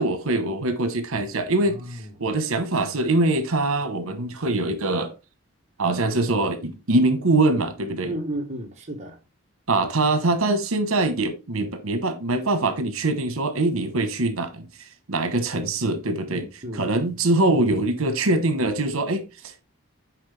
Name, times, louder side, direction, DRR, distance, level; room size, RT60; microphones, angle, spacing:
voice 1, 0.0-5.1 5.8-8.1 9.7-16.4 16.7-19.6, right 2 dB, 75° right, 1.1 m, -23 dB
voice 2, 1.6-2.1 8.1-9.2 16.3-16.9, right 1 dB, 30° right, 1.1 m, -33 dB
7.4 x 4.8 x 3.4 m
head